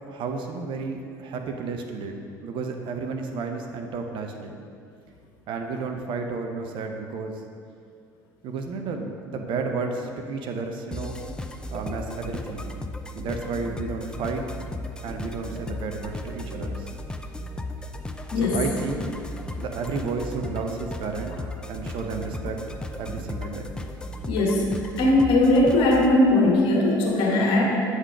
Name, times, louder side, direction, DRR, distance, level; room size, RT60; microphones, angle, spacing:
voice 1, 0.1-4.6 5.5-7.4 8.4-11.2 11.7-12.7 13.1-14.4 15.0-16.9 18.3-19.1 19.6-21.3 21.7-22.6 23.0-23.7, right 4 dB, 50° right, 4 dB, 0.7 m, -32 dB
sound 1, 10.9-26.1, left 1 dB, 10° left, 0.4 m, -35 dB
voice 2, 18.3-18.6 24.3-24.7 25.0-27.6, left 2 dB, 55° left, -2 dB, 1.5 m, -19 dB
8.1 x 3.9 x 4.7 m, 2.3 s
figure-of-eight pair, 65°, 11 cm